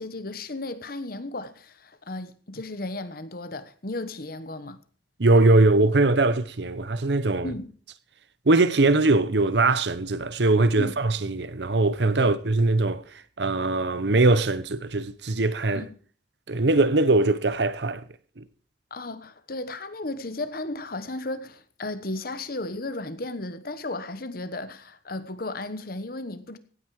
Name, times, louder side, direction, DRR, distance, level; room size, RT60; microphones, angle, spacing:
voice 1, 0.0-4.8 7.4-7.7 10.8-10.9 12.2-12.3 15.7-15.9 18.9-26.6, left 2 dB, 55° left, 1.2 m, -34 dB
voice 2, 5.2-7.5 8.5-13.0 13.4-15.9 16.5-18.0 18.4-18.5, right 2 dB, 75° right, 0.9 m, -21 dB
16.0 x 9.3 x 4.8 m
head